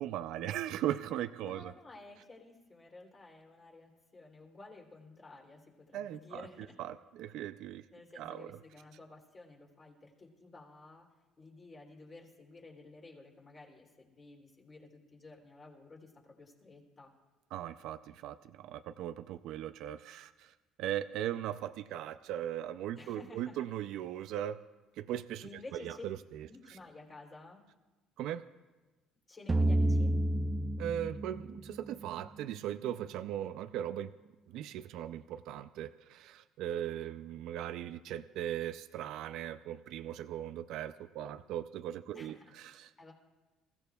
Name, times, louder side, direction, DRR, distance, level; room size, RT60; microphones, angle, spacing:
voice 1, 0.0-1.7 5.9-6.5 6.8-7.8 8.2-8.5 17.5-20.5 20.8-24.6 25.0-26.5 28.2-28.4 30.8-34.1 34.5-42.9, right 11 dB, 75° right, 11 dB, 0.4 m, -38 dB
voice 2, 1.4-6.8 7.9-11.1 11.4-17.1 22.9-23.7 25.4-26.1 26.4-27.6 29.3-30.1 42.1-43.1, left 3 dB, 30° left, 0 dB, 3.1 m, -53 dB
sound 1, 29.5-32.4, right 1 dB, 20° right, 0.6 m, -30 dB
27.0 x 15.5 x 2.3 m, 1.2 s
cardioid pair, 105°, 0 cm